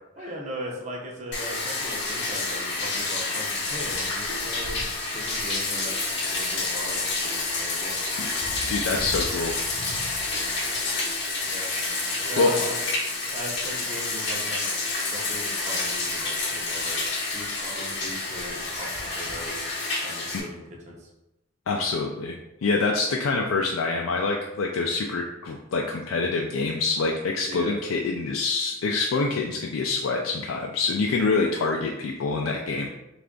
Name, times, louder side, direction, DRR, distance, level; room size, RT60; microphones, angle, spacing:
voice 1, 0.2-4.8 5.1-6.0 6.3-8.0 10.7-11.1 11.5-11.7 12.3-12.7 13.3-14.6 15.1-17.0 17.3-19.5 20.0-21.1 27.5-27.8, equal, 35° right, -1 dB, 0.7 m, -38 dB
Bathtub (filling or washing), 1.3-20.4, left 3 dB, 60° left, 0.8 m, -29 dB
voice 2, 8.2-9.5 9.9-10.0 12.4-12.7 21.7-22.3 22.6-32.9, left 3 dB, 80° left, 0 dB, 0.4 m, -26 dB
3.3 x 2.5 x 3.7 m, 0.93 s
head